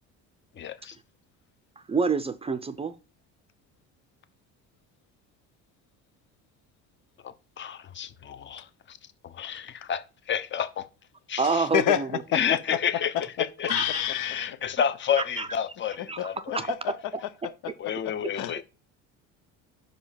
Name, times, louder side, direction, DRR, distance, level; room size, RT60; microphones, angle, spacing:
voice 1, 0.5-1.0 7.2-9.0 9.2-10.9 11.3-11.7 12.3-13.7 14.1-16.7 17.8-18.6, left 8 dB, 35° left, 0.8 m, -30 dB
voice 2, 1.9-2.9 11.4-12.1 13.7-14.0 15.4-15.5 16.1-16.2 16.5-16.8, right 4 dB, 20° right, 0.5 m, -27 dB
voice 3, 11.7-12.8 13.7-14.6 16.2-16.3 16.5-16.8 17.4-17.7 18.0-18.6, left 11 dB, 70° left, 0.8 m, -28 dB
5.1 x 5.1 x 5.7 m
cardioid pair, 120°, 32 cm